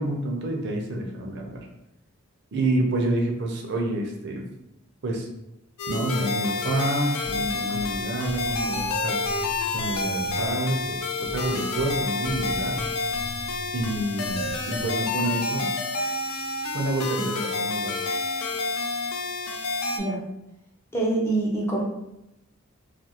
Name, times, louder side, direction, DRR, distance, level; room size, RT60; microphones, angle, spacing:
voice 1, 0.0-1.7 2.5-4.4 5.0-5.3 5.9-9.2 9.7-12.8 13.7-15.7 16.7-18.0, right 1 dB, 55° right, 1 dB, 0.5 m, -28 dB
sound 1, 5.8-20.0, left 3 dB, 90° left, 0.4 m, -29 dB
sound 2, 7.2-15.1, equal, 45° left, 0.9 m, -39 dB
voice 2, 20.9-21.8, right 2 dB, 10° left, -3 dB, 0.4 m, -25 dB
2.4 x 2.3 x 2.8 m, 0.87 s
head